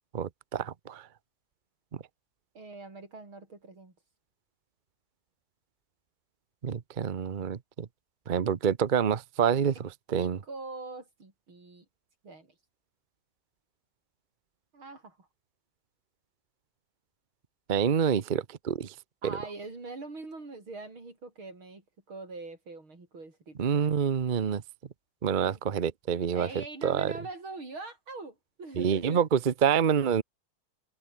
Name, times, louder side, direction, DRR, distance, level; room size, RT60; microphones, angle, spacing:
voice 1, 0.1-1.1 1.9-2.0 6.6-7.9 8.3-10.4 17.7-19.0 19.2-19.4 23.6-24.6 25.2-27.1 28.7-30.2, right 7 dB, 50° right, 0.5 m, -27 dB
voice 2, 2.5-3.9 10.2-11.8 12.2-12.5 14.7-15.3 19.2-23.9 25.4-25.6 26.3-29.3, right 3 dB, 80° right, 6.7 m, -43 dB
omnidirectional pair, 2.2 m